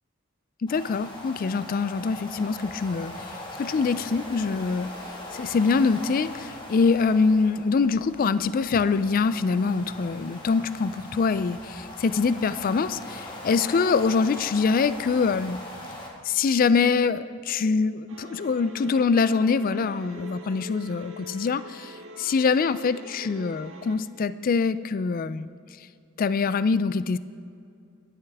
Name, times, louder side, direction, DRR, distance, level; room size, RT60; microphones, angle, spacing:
voice 1, 0.6-4.9 5.3-15.6 16.2-25.5 26.2-27.2, left 5 dB, 40° left, 14 dB, 0.3 m, -24 dB
sound 1, 0.7-16.1, left 1 dB, 20° left, 1.8 m, -40 dB
sound 2, 18.1-24.0, right 1 dB, 65° right, 1.3 m, -44 dB
21.5 x 10.0 x 3.5 m, 2.4 s
head